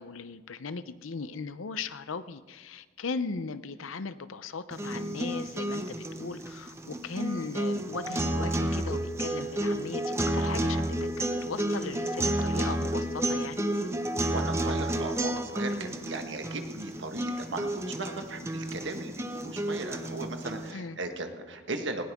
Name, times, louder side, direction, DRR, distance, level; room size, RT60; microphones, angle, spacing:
voice 1, 0.0-13.7 20.7-21.0, left 4 dB, 90° left, 13 dB, 0.7 m, -38 dB
sound 1, 4.7-20.7, right 1 dB, 15° right, 0.7 m, -31 dB
voice 2, 14.3-22.0, right 2 dB, 65° right, 5 dB, 1.5 m, -37 dB
19.0 x 17.5 x 3.6 m, 1.4 s
head